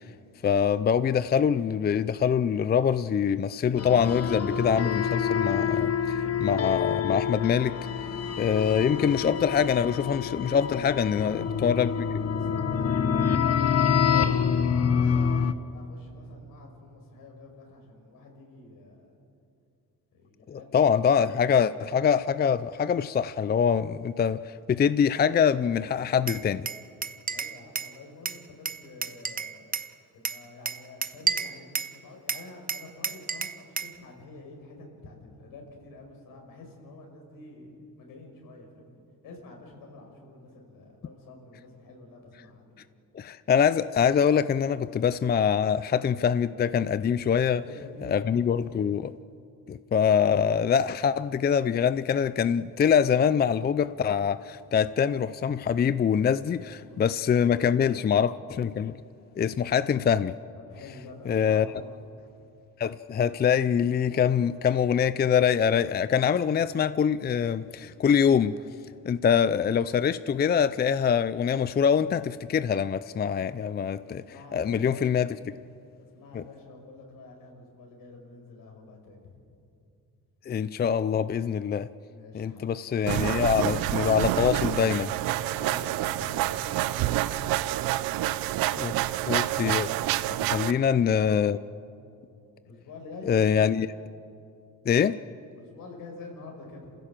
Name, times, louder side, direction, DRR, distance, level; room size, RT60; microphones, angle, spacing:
voice 1, 0.4-7.8 8.4-11.9 20.5-26.7 43.1-47.6 48.0-49.1 49.7-58.9 59.4-60.3 61.3-61.7 62.8-68.6 69.1-74.2 74.5-75.6 76.3-76.4 80.5-81.9 82.3-85.1 88.7-88.9 89.3-89.9 90.5-91.6 93.3-93.9 94.9-95.2, left 7 dB, 30° left, 0.5 m, -24 dB
sound 1, 3.8-15.5, left 7 dB, 45° left, 1.1 m, -27 dB
voice 2, 11.1-15.5 15.7-19.0 20.1-20.9 27.3-29.7 30.1-42.7 47.6-48.9 56.8-58.4 60.5-62.0 67.8-67.9 74.0-75.1 76.0-79.4 82.1-82.9 85.3-87.8 90.1-91.0 92.6-93.4 95.6-97.0, left 3 dB, 75° left, 5.6 m, -47 dB
Glass, 26.3-27.9 28.2-29.9 30.2-31.9 32.3-34.0, right 5 dB, 25° right, 0.9 m, -31 dB
sound 2, 83.1-90.7, right 14 dB, 90° right, 0.7 m, -28 dB
28.0 x 16.0 x 7.5 m
cardioid pair, 100°, 34 cm